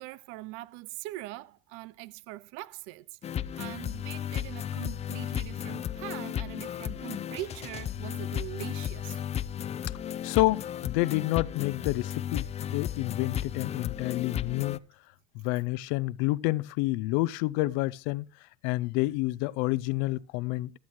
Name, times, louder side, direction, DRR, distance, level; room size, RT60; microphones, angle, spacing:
voice 1, 0.0-9.2, right 17 dB, 80° right, 0.5 m, -42 dB
sound 1, 3.2-14.8, left 10 dB, 30° left, 0.4 m, -34 dB
voice 2, 10.2-14.8 15.3-18.2 18.6-20.7, left 19 dB, 90° left, 0.5 m, -29 dB
15.5 x 11.0 x 3.0 m
cardioid pair, 115°, 21 cm